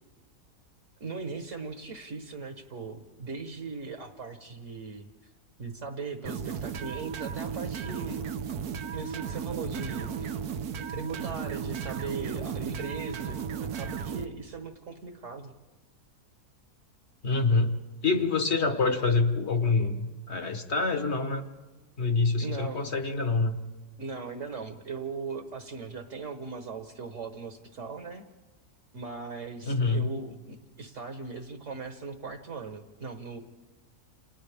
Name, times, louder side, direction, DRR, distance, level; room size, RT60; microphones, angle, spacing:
voice 1, 1.0-5.1 5.6-8.3 8.9-10.1 10.9-15.5 22.4-22.9 24.0-28.3 28.9-33.4, right 4 dB, 50° right, 5 dB, 1.6 m, -39 dB
sound 1, 6.2-14.3, right 7 dB, 70° right, 1.4 m, -35 dB
voice 2, 17.2-17.7 18.0-21.5 22.0-23.6 29.6-30.1, left 3 dB, 45° left, 7 dB, 1.4 m, -26 dB
29.5 x 27.5 x 3.5 m, 1.2 s
omnidirectional pair, 1.7 m